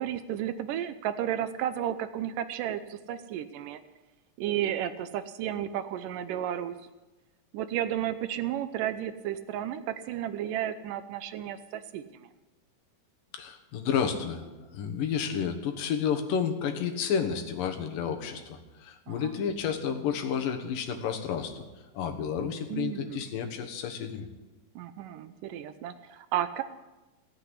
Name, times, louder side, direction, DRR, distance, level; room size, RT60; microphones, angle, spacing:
voice 1, 0.0-3.8 4.4-6.8 7.5-12.3 19.1-19.2 22.4-23.2 24.8-26.6, right 11 dB, 80° right, 11 dB, 2.3 m, -33 dB
voice 2, 13.3-24.3, left 7 dB, 75° left, 5 dB, 3.0 m, -31 dB
16.5 x 8.1 x 9.8 m, 1.1 s
omnidirectional pair, 4.0 m